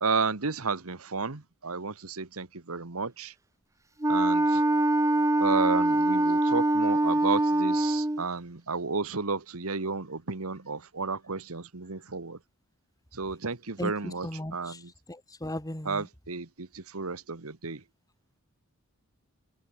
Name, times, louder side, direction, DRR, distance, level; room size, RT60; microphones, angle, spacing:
voice 1, 0.0-3.3 4.1-4.6 5.4-12.4 13.2-14.9 15.8-17.8, right 4 dB, 70° right, 1.5 m, -32 dB
Wind instrument woodwind instrument, 4.0-8.2, right 1 dB, 15° right, 1.0 m, -24 dB
voice 2, 13.8-14.8 15.1-16.1, left 1 dB, 15° left, 2.6 m, -37 dB
head